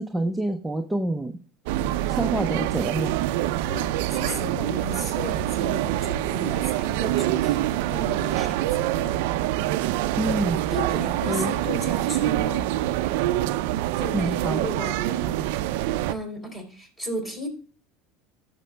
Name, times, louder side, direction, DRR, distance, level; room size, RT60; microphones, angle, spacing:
voice 1, 0.0-1.3 2.1-3.1 10.2-10.6 11.3-11.5 14.1-14.6, right 1 dB, 5° right, 4 dB, 0.6 m, -27 dB
sound 1, 1.7-16.1, right 14 dB, 75° right, 0.4 m, -25 dB
voice 2, 3.6-9.2 10.7-12.8 14.0-17.5, equal, 15° left, 4 dB, 3.4 m, -35 dB
14.0 x 6.7 x 2.2 m, 0.39 s
supercardioid pair, 105°, 0 cm